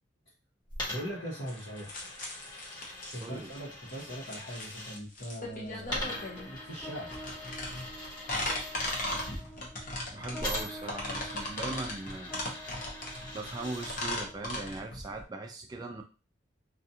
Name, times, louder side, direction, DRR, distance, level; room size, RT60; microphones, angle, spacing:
Coin (dropping), 0.7-5.0 5.8-9.4 10.4-14.0, left 1 dB, 25° left, 1.1 m, -42 dB
voice 1, 0.9-1.9 3.1-6.0 6.4-7.1, equal, 75° left, -10 dB, 1.1 m, -40 dB
sound 1, 1.5-15.2, left 1 dB, 50° left, 0.8 m, -37 dB
voice 2, 3.2-3.5 5.9-6.2 9.0-9.2 9.8-12.4 13.3-16.0, right 2 dB, 20° right, 2 dB, 0.3 m, -40 dB
sound 2, 6.0-14.5, equal, 5° left, 0.8 m, -49 dB
2.4 x 2.3 x 2.7 m, 0.32 s
head